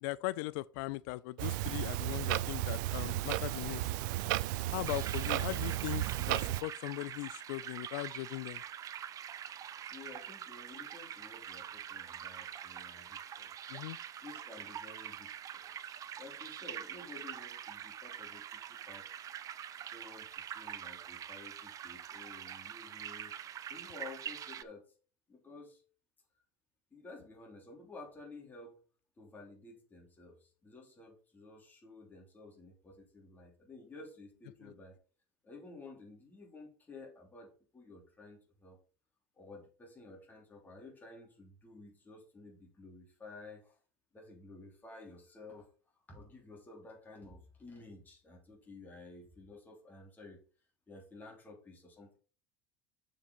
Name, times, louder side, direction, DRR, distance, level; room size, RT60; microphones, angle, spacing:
voice 1, 0.0-3.9 4.7-8.6 13.7-14.0 34.6-34.7, left 19 dB, 75° left, 0.4 m, -39 dB
Clock, 1.4-6.6, right 16 dB, 80° right, 0.5 m, -34 dB
sound 1, 4.9-24.6, right 9 dB, 35° right, 0.6 m, -45 dB
voice 2, 9.9-13.5 14.2-15.6 16.2-19.0 19.9-23.4 23.7-24.9 25.3-25.8 26.9-28.8 29.2-35.0 35.4-38.8 39.4-43.8 44.1-45.7 46.1-50.4 50.9-52.2, left 3 dB, 15° left, 3.3 m, -53 dB
6.7 x 5.3 x 5.4 m
supercardioid pair, 125°, 10 cm